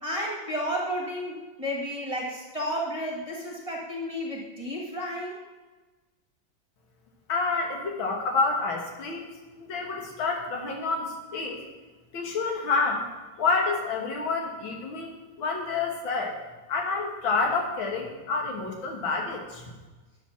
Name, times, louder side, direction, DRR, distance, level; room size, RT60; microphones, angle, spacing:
voice 1, 0.0-5.4, equal, 20° right, -3 dB, 1.5 m, -32 dB
voice 2, 7.3-11.6 12.1-13.0 13.4-16.4 16.7-19.7, left 4 dB, 85° left, 1 dB, 2.2 m, -28 dB
8.8 x 6.7 x 5.9 m, 1.3 s
omnidirectional pair, 2.1 m